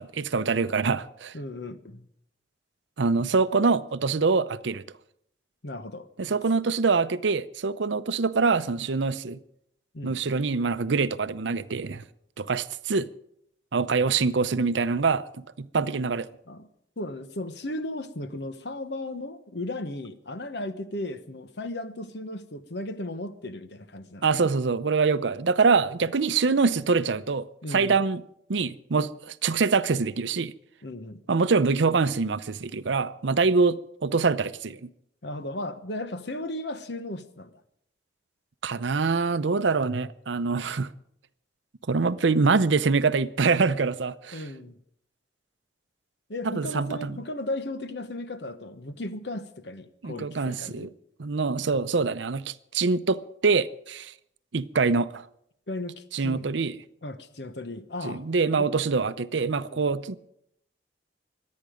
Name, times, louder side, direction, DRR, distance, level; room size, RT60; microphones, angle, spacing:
voice 1, 0.0-1.3 3.0-4.8 6.2-9.4 10.0-12.0 12.4-13.1 13.7-15.3 15.6-16.3 24.2-28.2 28.5-30.5 31.3-34.9 38.6-40.9 41.9-44.4 46.4-47.2 50.0-50.9 51.2-54.1 54.5-55.3 56.1-56.8 58.0-60.2, right 4 dB, 75° right, 0.6 m, -25 dB
voice 2, 1.3-2.1 5.6-6.1 9.9-10.2 16.5-16.7 17.0-24.5 27.6-28.0 30.8-31.2 35.2-37.5 40.7-40.8 44.3-44.8 46.3-50.9 55.7-56.5 57.0-58.2 58.6-58.7 59.7-60.0, left 1 dB, 65° left, 1.1 m, -36 dB
24.5 x 9.6 x 5.1 m
head